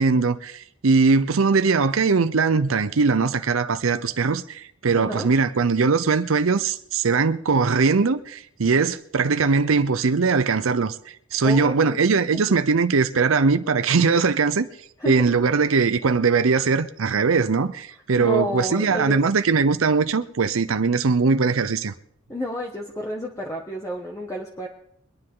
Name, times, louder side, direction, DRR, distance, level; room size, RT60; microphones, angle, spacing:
voice 1, 0.0-14.7 15.1-21.9, right 4 dB, 85° right, 0.7 m, -21 dB
voice 2, 4.9-5.3 11.4-12.0 15.0-15.2 18.2-19.2 22.3-24.7, equal, 15° left, 1.3 m, -30 dB
23.5 x 10.0 x 3.8 m
head